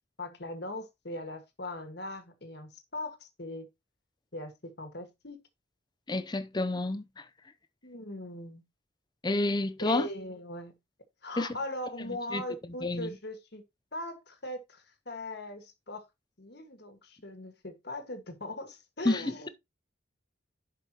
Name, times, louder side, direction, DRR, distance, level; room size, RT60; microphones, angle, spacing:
voice 1, 0.2-3.7 4.3-5.4 7.8-8.6 9.8-10.7 11.2-13.6 13.9-16.0 16.4-19.5, left 1 dB, 55° left, 1.6 m, -40 dB
voice 2, 6.1-7.2 9.2-10.1 11.4-11.5 12.3-12.4 12.8-13.1 19.1-19.3, left 2 dB, 20° left, 0.5 m, -29 dB
11.0 x 5.2 x 2.9 m
head